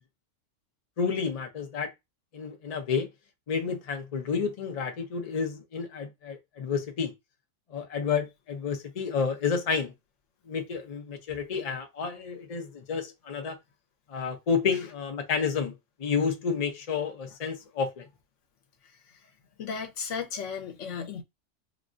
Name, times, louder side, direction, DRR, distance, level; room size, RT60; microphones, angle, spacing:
voice 1, 1.0-1.9 2.3-3.1 3.5-7.1 7.7-9.9 10.5-13.6 14.1-18.1, left 6 dB, 40° left, 0.6 m, -30 dB
voice 2, 19.6-21.2, left 6 dB, 80° left, 1.1 m, -34 dB
3.9 x 2.2 x 2.5 m
omnidirectional pair, 1.3 m